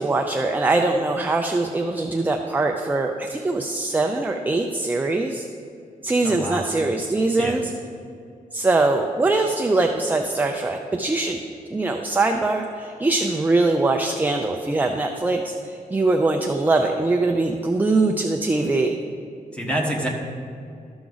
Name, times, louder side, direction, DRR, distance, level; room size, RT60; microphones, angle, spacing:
voice 1, 0.0-5.5 6.0-7.7 8.5-11.4 11.7-19.0, right 2 dB, 10° right, 3 dB, 0.4 m, -22 dB
voice 2, 6.2-6.6 7.4-7.6 19.5-20.1, right 1 dB, 5° left, -2 dB, 1.2 m, -26 dB
12.5 x 6.0 x 3.9 m, 2.5 s
wide cardioid pair, 170°, 15 cm